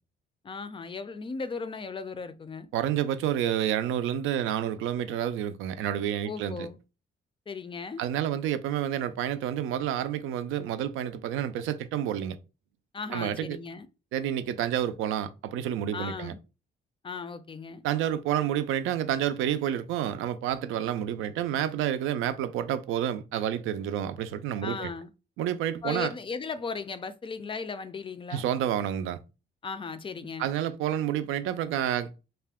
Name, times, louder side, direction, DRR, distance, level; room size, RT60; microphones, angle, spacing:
voice 1, 0.4-2.7 6.3-6.8 7.5-8.0 12.9-13.9 15.9-16.4 17.0-17.8 24.6-25.1 25.8-28.4 29.6-30.5, left 4 dB, 25° left, 0.3 m, -36 dB
voice 2, 2.7-6.7 8.0-12.4 13.1-13.6 14.1-16.3 17.8-24.9 25.4-26.1 28.3-29.2 30.4-32.2, right 10 dB, 85° right, 0.4 m, -29 dB
2.4 x 2.2 x 3.5 m
cardioid pair, 90°, 20 cm